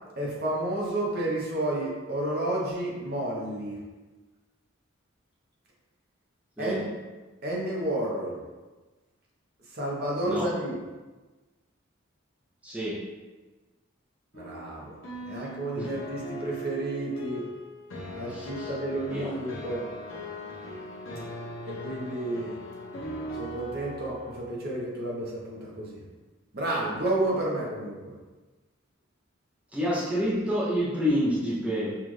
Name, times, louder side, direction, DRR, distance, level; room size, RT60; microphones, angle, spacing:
voice 1, 0.2-3.8 6.6-6.9 7.4-8.4 9.7-10.8 14.3-15.0 15.3-17.5 18.2-19.9 21.7-22.6 23.4-26.0 26.5-28.1, right 1 dB, 50° right, -4 dB, 1.0 m, -31 dB
voice 2, 12.6-13.1 15.8-15.9 18.3-18.7 19.1-19.3 29.7-32.0, equal, 5° right, -8 dB, 0.6 m, -28 dB
sound 1, 14.3-24.4, equal, 75° left, 0.9 m, -39 dB
5.8 x 2.5 x 3.2 m, 1.2 s
head